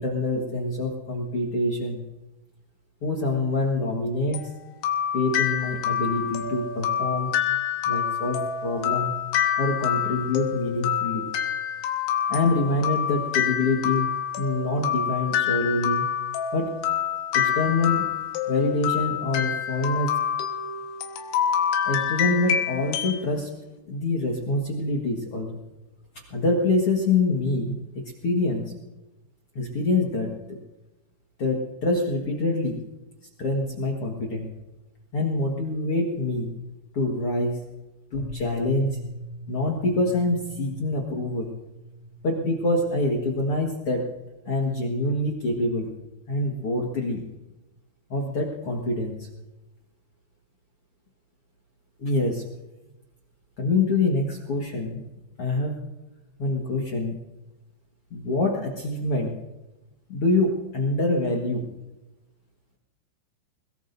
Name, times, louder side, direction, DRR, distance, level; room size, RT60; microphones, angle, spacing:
voice 1, 0.0-2.0 3.0-4.4 5.1-7.3 7.9-9.1 9.6-11.2 12.3-14.1 14.4-16.1 16.5-16.7 17.3-18.1 18.5-20.1 21.8-23.5 23.9-25.6 26.3-28.7 29.5-30.6 31.4-32.8 33.4-34.5 35.1-36.5 36.9-37.6 38.1-39.0 39.5-41.5 42.2-44.1 44.4-45.9 46.3-47.3 48.1-49.3 52.0-52.4 53.6-55.0 55.4-55.7 56.4-57.2 58.1-59.3 60.1-61.7, left 2 dB, 65° left, -1 dB, 1.4 m, -25 dB
sound 1, 4.3-23.2, left 9 dB, 80° left, 3.7 m, -27 dB
sound 2, 38.1-46.2, right 1 dB, 30° left, 4.9 m, -42 dB
21.5 x 21.0 x 2.7 m, 1.0 s
omnidirectional pair, 5.2 m